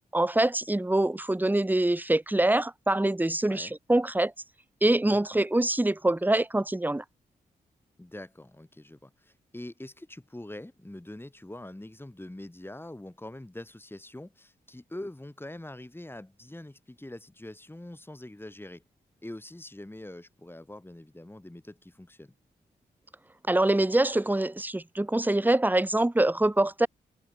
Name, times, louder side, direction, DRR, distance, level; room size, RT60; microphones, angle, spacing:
voice 1, 0.1-4.3 4.8-7.0 23.5-26.9, right 1 dB, 10° right, 1.0 m, -24 dB
voice 2, 8.0-18.8 19.2-22.3, left 1 dB, 15° left, 2.8 m, -44 dB
supercardioid pair, 40°, 17 cm